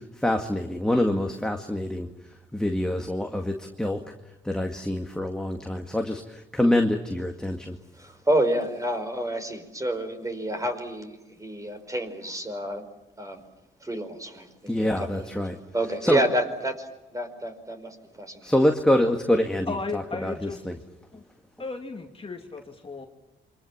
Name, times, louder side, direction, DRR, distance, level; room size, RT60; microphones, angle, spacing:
voice 1, 0.2-2.1 2.5-4.0 4.4-7.8 14.7-15.6 16.0-16.2 18.4-20.8, left 1 dB, 5° left, 3 dB, 2.1 m, -25 dB
voice 2, 8.0-12.8 13.2-13.4 13.8-15.4 15.7-18.5, right 1 dB, 15° right, 7 dB, 5.2 m, -29 dB
voice 3, 19.7-20.7 21.1-21.2 21.6-23.1, left 3 dB, 30° left, 3 dB, 2.4 m, -35 dB
28.5 x 25.0 x 7.4 m, 1.0 s
cardioid pair, 90°, 20 cm